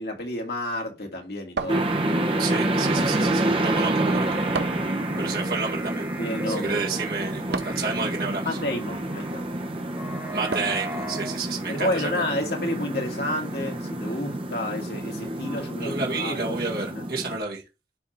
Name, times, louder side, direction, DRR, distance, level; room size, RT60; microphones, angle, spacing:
voice 1, 0.0-1.9 6.2-6.8 8.4-9.4 11.7-16.4 16.9-17.0, left 1 dB, 65° left, 2.5 m, -30 dB
sound 1, 1.6-2.4 4.5-5.0 7.5-7.9 10.5-10.9, right 4 dB, 75° right, 0.7 m, -32 dB
sound 2, 1.7-17.4, right 1 dB, 30° right, 1.0 m, -28 dB
voice 2, 2.4-4.3 5.2-6.1 6.5-8.5 10.3-12.1 15.8-17.6, right 4 dB, 55° right, 2.2 m, -30 dB
sound 3, 2.9-11.4, right 1 dB, 15° right, 1.3 m, -40 dB
10.5 x 3.7 x 4.5 m
head